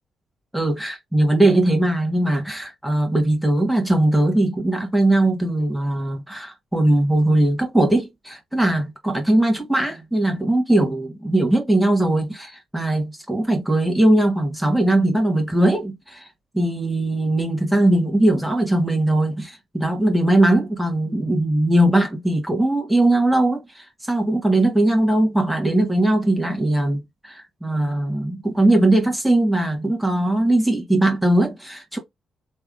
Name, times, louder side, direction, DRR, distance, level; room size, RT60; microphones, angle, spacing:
voice 1, 0.5-16.3 16.5-32.0, right 1 dB, 5° right, 1.5 m, -20 dB
3.4 x 3.1 x 2.5 m
hypercardioid pair, 45°, 0 cm